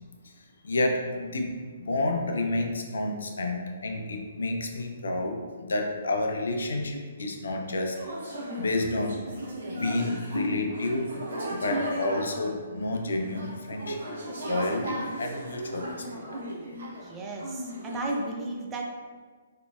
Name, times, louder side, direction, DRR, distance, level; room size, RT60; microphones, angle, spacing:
voice 1, 0.6-8.0 8.2-9.2 9.7-11.1 11.5-14.0 14.4-16.1, left 2 dB, 70° left, 3 dB, 0.5 m, -30 dB
sound 1, 7.9-17.1 17.4-18.2, right 1 dB, 60° right, 1.0 m, -36 dB
voice 2, 17.0-18.9, right 2 dB, 15° right, -1 dB, 0.5 m, -34 dB
3.8 x 3.0 x 2.3 m, 1.5 s
figure-of-eight pair, 130°, 0 cm